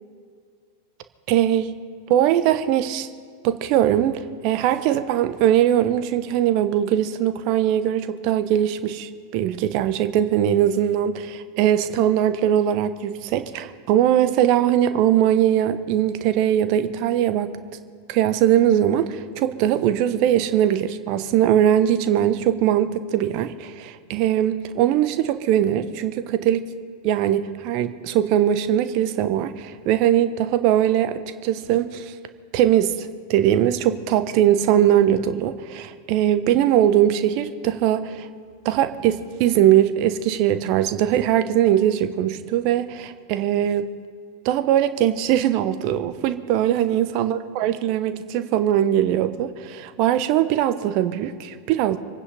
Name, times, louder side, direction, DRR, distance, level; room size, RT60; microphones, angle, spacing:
voice 1, 1.3-1.7 2.1-3.1 3.4-17.5 18.1-26.7 27.0-32.1 32.5-38.3 38.6-43.9 44.4-52.0, right 11 dB, 45° right, 11 dB, 1.0 m, -21 dB
26.0 x 9.7 x 5.2 m, 2.1 s
figure-of-eight pair, 90°, 0 cm